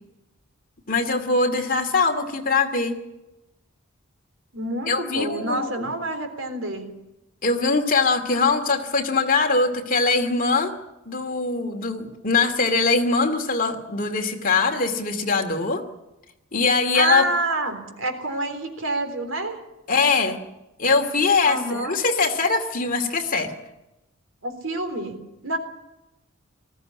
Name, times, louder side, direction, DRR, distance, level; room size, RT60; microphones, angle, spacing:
voice 1, 0.9-3.0 4.9-5.9 7.4-10.7 11.1-15.8 16.5-17.2 19.9-20.4 20.8-23.5, left 4 dB, 45° left, 5 dB, 2.4 m, -22 dB
voice 2, 4.5-6.9 16.9-19.6 21.5-22.0 24.4-25.2 25.4-25.6, right 2 dB, 70° right, 6 dB, 3.7 m, -27 dB
20.0 x 15.0 x 9.7 m, 0.95 s
head